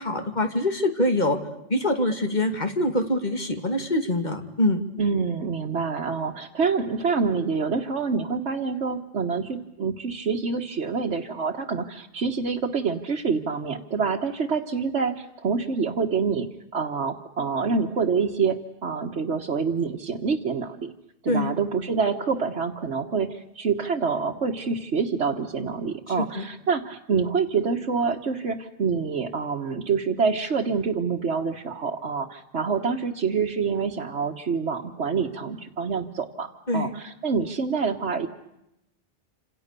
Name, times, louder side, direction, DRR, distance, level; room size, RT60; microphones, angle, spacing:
voice 1, 0.0-1.4 1.7-4.8 21.3-21.6 26.4-26.5 36.7-36.9, left 1 dB, 40° left, 6 dB, 2.7 m, -24 dB
voice 2, 5.0-20.9 21.2-38.3, right 5 dB, 85° right, 0 dB, 1.7 m, -26 dB
28.5 x 27.5 x 6.8 m, 0.86 s
omnidirectional pair, 1.1 m